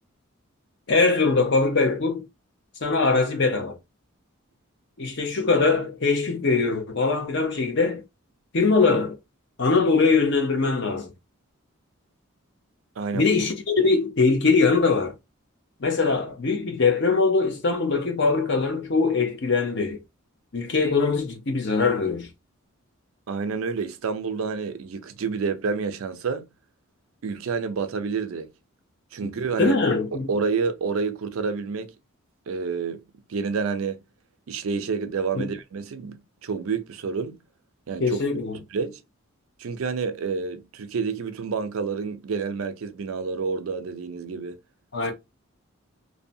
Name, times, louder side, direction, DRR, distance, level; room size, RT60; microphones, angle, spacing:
voice 1, 0.9-2.2 2.8-3.8 5.0-8.0 8.5-9.2 9.6-11.1 13.1-15.1 15.8-20.0 20.5-22.3 29.2-29.3 29.6-30.3 35.3-35.5 38.0-38.6 44.9-45.1, left 4 dB, 55° left, 0.7 m, -22 dB
voice 2, 13.0-13.3 23.3-26.5 27.2-28.5 29.1-29.8 30.1-31.9 32.5-33.0 33.3-34.0 34.5-37.4 37.9-38.2 38.5-39.0 39.6-44.6 45.0-45.1, right 5 dB, 75° right, 0.4 m, -29 dB
2.7 x 2.1 x 2.6 m
head